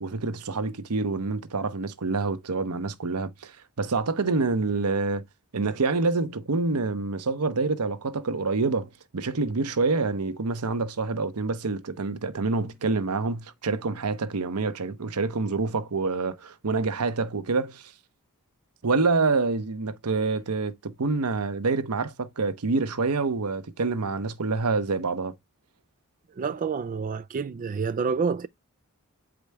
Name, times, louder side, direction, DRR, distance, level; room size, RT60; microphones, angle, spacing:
voice 1, 0.0-5.2 5.5-17.9 18.8-25.3, right 3 dB, 90° right, 0.9 m, -27 dB
voice 2, 26.3-28.5, right 5 dB, 40° right, 0.3 m, -28 dB
8.4 x 4.9 x 3.4 m
head